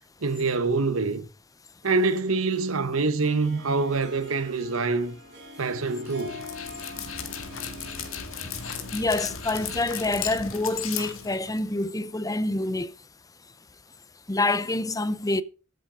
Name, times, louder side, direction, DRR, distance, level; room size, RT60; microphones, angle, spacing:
voice 1, 0.2-1.3 1.8-5.2 5.6-6.4, right 3 dB, 85° right, 1.1 m, -25 dB
Harp, 3.2-10.9, left 1 dB, 55° right, 4.1 m, -45 dB
Dog, 6.1-11.8, left 7 dB, 80° left, 2.0 m, -36 dB
voice 2, 8.9-12.9 14.3-15.4, left 2 dB, 15° left, 0.7 m, -27 dB
13.0 x 7.7 x 5.1 m
head